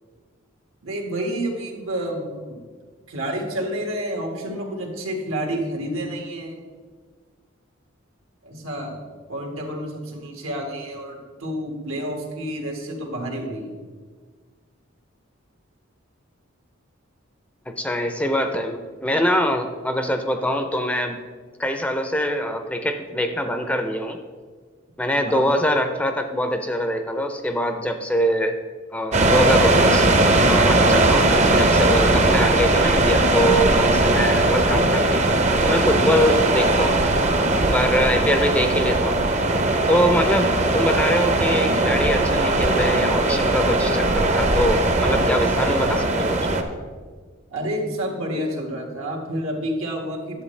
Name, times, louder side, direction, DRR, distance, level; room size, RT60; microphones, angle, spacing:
voice 1, 0.8-2.6 3.1-6.6 8.4-9.0 9.3-13.7 25.3-25.5 47.5-50.4, right 1 dB, 85° right, 0 dB, 1.7 m, -29 dB
voice 2, 17.7-21.2 21.6-24.2 25.0-28.6 28.9-30.1 30.5-35.3 35.6-37.0 37.7-39.2 39.9-46.5, equal, 5° left, 6 dB, 0.4 m, -23 dB
sound 1, 29.1-46.6, right 2 dB, 35° right, 0.6 m, -19 dB
11.0 x 7.6 x 3.2 m, 1.5 s
head